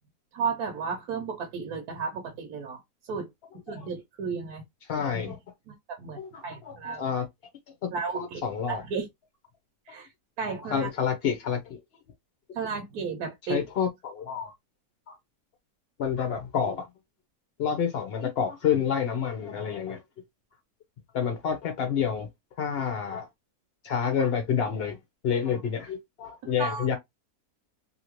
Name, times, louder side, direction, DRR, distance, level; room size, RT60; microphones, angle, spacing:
voice 1, 0.3-3.3 3.7-4.6 5.2-5.3 5.7-7.0 7.9-8.4 8.7-9.1 9.9-10.1 10.4-10.9 12.5-13.7 26.4-26.9, right 5 dB, 70° right, 1.2 m, -33 dB
voice 2, 4.9-5.4 6.2-7.3 7.8-8.8 10.4-11.8 13.5-14.5 15.1-15.2 16.0-16.9 17.6-20.0 21.1-22.3 22.6-23.3 23.8-25.0 25.2-27.0, left 7 dB, 60° left, 0.6 m, -29 dB
2.8 x 2.7 x 2.9 m
omnidirectional pair, 1.7 m